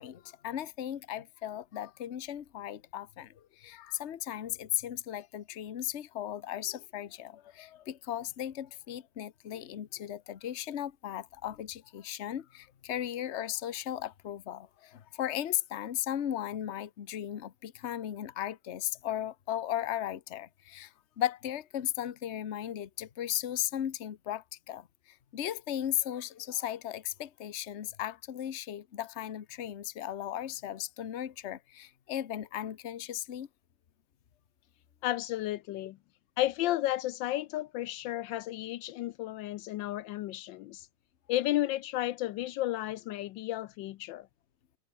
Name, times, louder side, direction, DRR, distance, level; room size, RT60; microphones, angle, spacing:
voice 1, 0.0-24.9 25.3-33.5, left 11 dB, 45° left, 1.1 m, -36 dB
voice 2, 35.0-36.0 36.4-40.9 41.3-44.3, left 15 dB, 80° left, 1.3 m, -33 dB
omnidirectional pair, 2.0 m